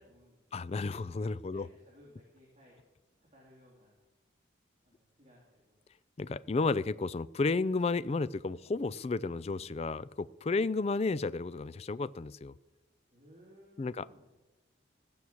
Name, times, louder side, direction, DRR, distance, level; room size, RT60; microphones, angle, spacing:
voice 1, 0.0-0.6 1.5-2.8 3.2-3.9 4.8-5.8 10.5-10.7 13.1-14.3, equal, 30° right, -5 dB, 3.4 m, -60 dB
voice 2, 0.5-1.7 6.2-12.6 13.8-14.0, left 3 dB, 30° left, 18 dB, 0.3 m, -32 dB
15.5 x 7.1 x 7.8 m, 1.2 s
head